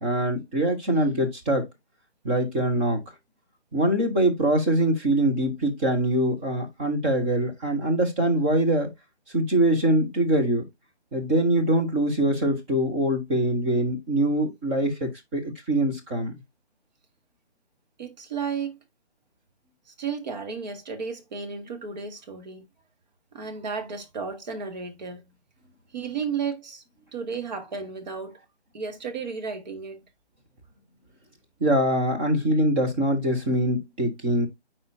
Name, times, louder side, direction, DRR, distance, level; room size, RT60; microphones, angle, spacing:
voice 1, 0.0-1.7 2.2-3.0 3.7-8.9 9.3-10.6 11.1-16.3 31.6-34.5, right 1 dB, 10° right, 0.7 m, -23 dB
voice 2, 18.0-18.8 19.9-22.6 23.3-25.2 25.9-26.8 27.1-28.4 28.7-30.0, right 5 dB, 40° right, 1.7 m, -33 dB
9.4 x 4.3 x 2.7 m
figure-of-eight pair, 150°, 33 cm